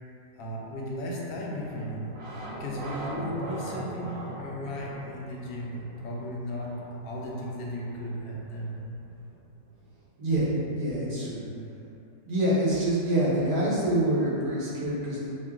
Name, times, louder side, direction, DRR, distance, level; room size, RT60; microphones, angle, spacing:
voice 1, 0.4-2.2 2.5-8.9, equal, 80° left, -3 dB, 1.2 m, -35 dB
sound 1, 1.3-10.0, right 1 dB, 90° right, 1.4 m, -41 dB
voice 2, 10.2-11.4 12.2-15.3, right 1 dB, 65° right, -9 dB, 1.6 m, -26 dB
6.0 x 2.2 x 2.3 m, 2.6 s
omnidirectional pair, 1.9 m